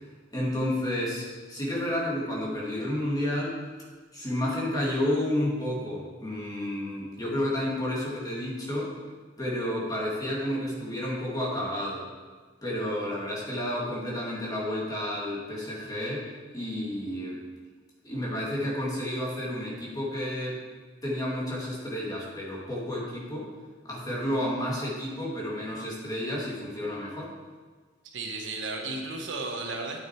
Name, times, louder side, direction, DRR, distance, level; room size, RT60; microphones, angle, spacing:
voice 1, 0.3-3.6 4.1-8.9 9.4-12.1 12.6-17.4 18.0-20.6 21.0-23.5 23.8-27.3, left 1 dB, 20° left, -4 dB, 2.1 m, -31 dB
voice 2, 28.1-30.0, right 3 dB, 75° right, 2 dB, 1.2 m, -34 dB
9.0 x 6.0 x 4.6 m, 1.4 s
head